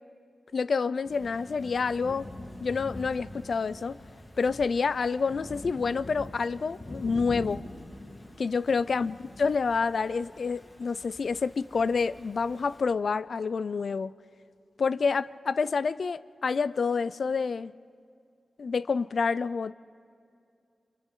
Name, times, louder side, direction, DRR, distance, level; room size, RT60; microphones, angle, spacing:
voice 1, 0.5-2.3 2.6-4.0 4.4-7.6 8.4-14.1 14.8-17.7 18.6-19.7, left 5 dB, 60° left, 0.4 m, -28 dB
Thunder / Rain, 1.0-12.8, left 1 dB, 35° left, 3.3 m, -44 dB
28.5 x 27.5 x 3.8 m
wide cardioid pair, 135°, 0 cm